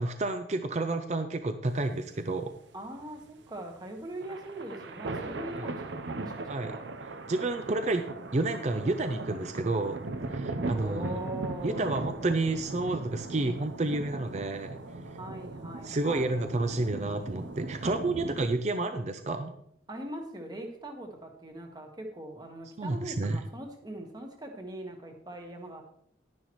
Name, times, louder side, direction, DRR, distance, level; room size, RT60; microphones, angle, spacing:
voice 1, 0.0-2.5 5.6-5.7 6.5-6.7 7.3-8.1 8.3-11.1 11.6-14.7 15.8-19.5 22.8-23.4, right 2 dB, 35° right, 8 dB, 0.5 m, -30 dB
sound 1, 1.7-18.5, right 2 dB, 75° right, 0.7 m, -39 dB
voice 2, 2.7-6.8 10.7-12.1 15.0-16.3 19.9-25.8, right 1 dB, 20° right, 3 dB, 1.3 m, -41 dB
11.0 x 10.5 x 3.1 m, 0.70 s
head